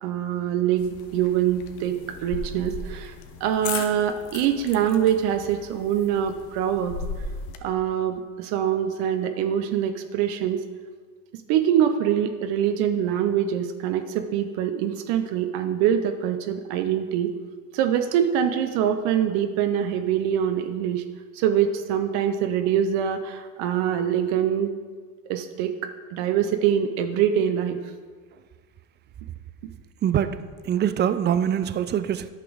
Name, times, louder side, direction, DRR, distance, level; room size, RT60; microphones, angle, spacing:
voice 1, 0.0-3.1 3.4-6.9 7.6-10.6 11.5-17.3 17.7-21.0 21.3-24.7 25.3-27.8, right 9 dB, 65° right, 8 dB, 0.8 m, -24 dB
sound 1, 0.8-7.6, left 5 dB, 60° left, 1.1 m, -37 dB
voice 2, 30.0-30.4 30.7-32.3, right 9 dB, 25° right, 13 dB, 0.5 m, -23 dB
10.5 x 5.9 x 5.0 m, 1.5 s
hypercardioid pair, 90°, 42 cm